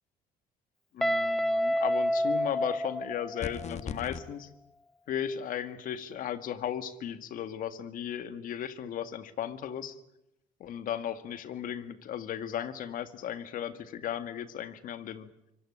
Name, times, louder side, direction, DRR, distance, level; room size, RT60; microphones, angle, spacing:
voice 1, 0.9-4.5 5.1-10.0 10.6-15.3, left 9 dB, 60° left, 12 dB, 1.9 m, -36 dB
Guitar, 1.0-3.8, equal, ahead, 1.4 m, -29 dB
sound 1, 3.4-4.2, left 7 dB, 45° left, 1.6 m, -37 dB
25.0 x 18.0 x 9.9 m, 0.84 s
supercardioid pair, 85°, 16 cm